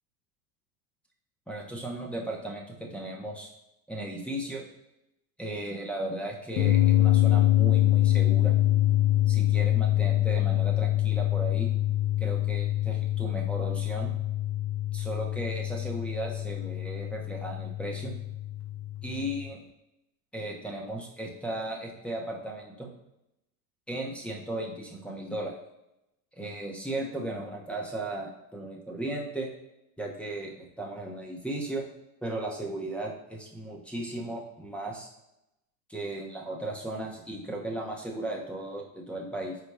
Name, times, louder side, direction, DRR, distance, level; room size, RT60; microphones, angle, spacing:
voice 1, 1.5-3.5 3.9-4.6 5.4-8.5 9.3-11.7 12.2-14.1 14.9-18.1 19.0-19.6 20.3-22.9 23.9-25.5 26.3-29.5 30.0-31.8 32.2-35.1 35.9-39.6, right 1 dB, 5° left, -3 dB, 0.7 m, -36 dB
sound 1, 6.6-19.5, left 14 dB, 80° left, 0.9 m, -25 dB
4.6 x 4.1 x 2.2 m, 0.88 s
hypercardioid pair, 90°, 45 cm